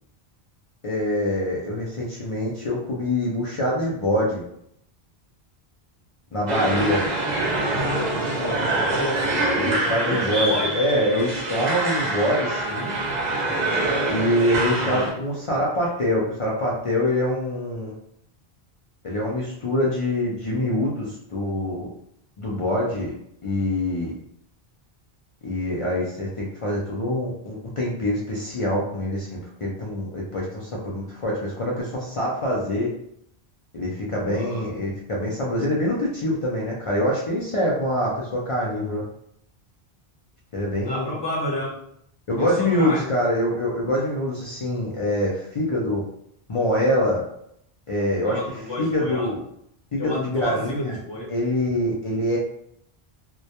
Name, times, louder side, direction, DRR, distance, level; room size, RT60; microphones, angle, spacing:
voice 1, 0.8-4.5 6.3-7.1 9.3-12.9 14.1-17.9 19.0-21.9 22.4-23.1 23.4-24.1 25.4-32.9 33.7-39.0 40.5-41.2 42.3-46.0 46.5-47.2 47.9-48.4 48.8-49.4 49.9-51.0 51.3-52.4, left 1 dB, 60° left, -3 dB, 0.3 m, -25 dB
sound 1, 6.5-15.1, right 2 dB, 50° right, 0.6 m, -25 dB
voice 2, 7.8-10.8 14.8-15.1 34.3-34.7 40.8-41.8 42.4-43.1 48.2-49.3 50.0-51.3, left 1 dB, 30° left, -6 dB, 0.7 m, -31 dB
2.2 x 2.1 x 2.7 m, 0.73 s
omnidirectional pair, 1.1 m